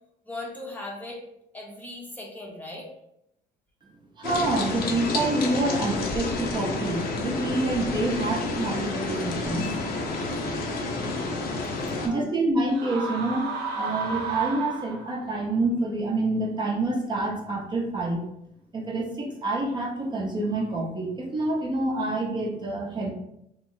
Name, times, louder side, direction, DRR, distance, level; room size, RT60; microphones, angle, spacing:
voice 1, 0.2-1.2 1.5-2.9 11.8-12.3, left 2 dB, 10° left, -3 dB, 0.7 m, -38 dB
sound 1, 4.2-12.1, left 3 dB, 65° left, 0.7 m, -30 dB
voice 2, 4.2-9.7 12.0-18.2 18.7-23.1, right 2 dB, 25° right, -2 dB, 0.7 m, -27 dB
sound 2, 12.7-15.3, right 4 dB, 90° right, 0.7 m, -32 dB
3.0 x 2.1 x 3.8 m, 0.80 s
cardioid pair, 110°, 17 cm